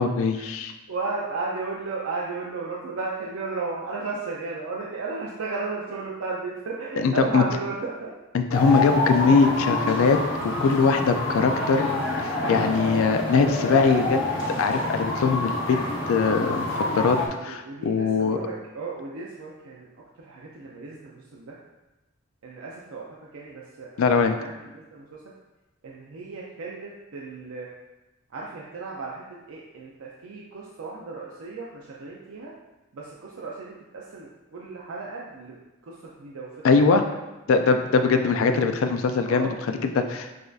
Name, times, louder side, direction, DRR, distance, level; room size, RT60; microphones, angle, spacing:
voice 1, 0.0-0.7 7.0-7.4 8.3-10.2 10.4-11.9 12.2-14.2 14.6-15.8 16.1-18.4 24.0-24.4 36.6-37.0 37.5-40.5, left 4 dB, 80° left, 7 dB, 0.3 m, -21 dB
voice 2, 0.9-8.1 8.7-8.8 12.7-13.1 17.4-19.9 20.2-21.6 22.4-23.0 23.3-23.9 24.4-25.1 25.8-27.7 28.3-32.5 32.9-35.6 35.9-36.5 37.9-38.2 39.2-39.5, right 3 dB, 80° right, -3 dB, 0.5 m, -34 dB
sound 1, 8.5-17.3, left 2 dB, 60° left, 0.7 m, -27 dB
6.3 x 2.6 x 2.3 m, 1.1 s
head